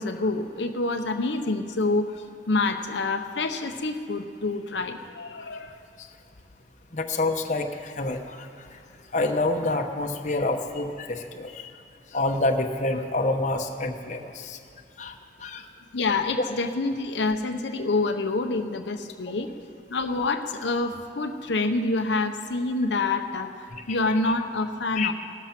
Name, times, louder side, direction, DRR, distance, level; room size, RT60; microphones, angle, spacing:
voice 1, 0.0-2.1 2.5-5.8 15.9-19.5 19.9-25.1, left 3 dB, 75° left, 6 dB, 0.8 m, -27 dB
voice 2, 6.9-8.5 9.1-11.7 12.1-14.6 15.0-15.1 15.4-15.6 23.9-24.2 24.9-25.1, left 2 dB, 40° left, 4 dB, 0.9 m, -27 dB
16.5 x 13.5 x 5.9 m, 2.5 s
head